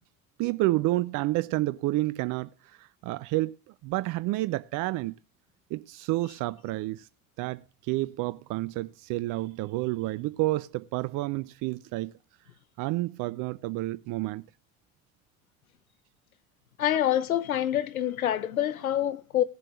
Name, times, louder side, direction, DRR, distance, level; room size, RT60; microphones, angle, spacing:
voice 1, 0.4-2.5 2.8-3.6 3.8-5.1 5.7-7.1 7.4-12.1 12.8-14.4, right 18 dB, 50° right, 0.6 m, -29 dB
voice 2, 16.8-19.4, left 11 dB, 85° left, 0.8 m, -26 dB
18.5 x 7.5 x 3.1 m
figure-of-eight pair, 60°, 41 cm